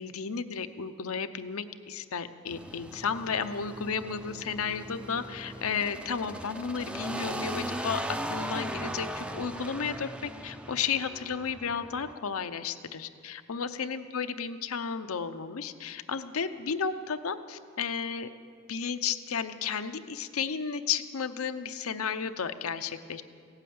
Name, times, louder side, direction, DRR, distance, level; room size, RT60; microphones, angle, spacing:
voice 1, 0.0-8.0 8.3-18.3 18.7-23.2, left 6 dB, 85° left, 10 dB, 0.7 m, -33 dB
sound 1, 2.5-12.1, right 1 dB, 5° right, 0.4 m, -38 dB
16.0 x 8.9 x 8.7 m, 2.2 s
head